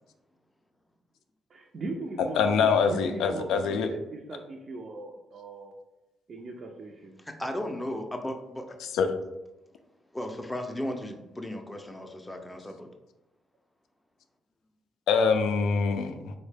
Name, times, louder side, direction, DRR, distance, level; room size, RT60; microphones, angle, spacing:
voice 1, 1.5-5.7 6.3-7.2, right 2 dB, 50° right, 1 dB, 0.4 m, -39 dB
voice 2, 2.4-3.9 8.9-9.1 15.1-16.3, left 5 dB, 85° left, 7 dB, 0.3 m, -24 dB
voice 3, 7.2-8.8 10.1-12.9, left 1 dB, 10° left, 4 dB, 0.4 m, -35 dB
3.6 x 2.1 x 3.3 m, 0.95 s
cardioid pair, 90°, 0 cm